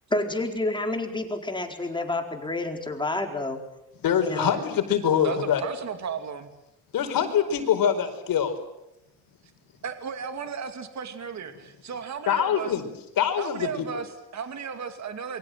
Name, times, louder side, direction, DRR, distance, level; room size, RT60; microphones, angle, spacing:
voice 1, 0.1-3.6 4.3-4.5, left 2 dB, 15° left, 4 dB, 4.4 m, -29 dB
voice 2, 4.0-5.6 6.9-8.6 12.3-12.9 13.2-13.9, left 8 dB, 70° left, 7 dB, 4.7 m, -24 dB
voice 3, 5.2-6.5 9.8-12.7 13.4-15.4, right 6 dB, 50° right, 8 dB, 2.6 m, -35 dB
28.0 x 23.0 x 7.8 m, 0.87 s
cardioid pair, 120°, 36 cm